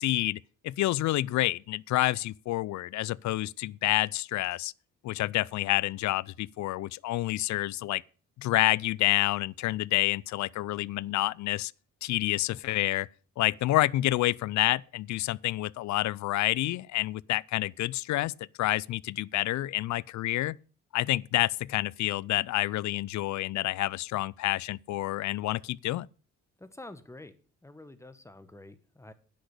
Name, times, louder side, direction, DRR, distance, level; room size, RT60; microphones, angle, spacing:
voice 1, 0.0-4.7 5.0-8.0 8.4-11.7 12.0-13.1 13.4-20.6 20.9-26.1, left 16 dB, 70° left, 0.5 m, -28 dB
voice 2, 26.6-27.3 27.6-29.1, left 2 dB, 10° left, 1.4 m, -48 dB
10.0 x 6.4 x 8.2 m
cardioid pair, 90°, 30 cm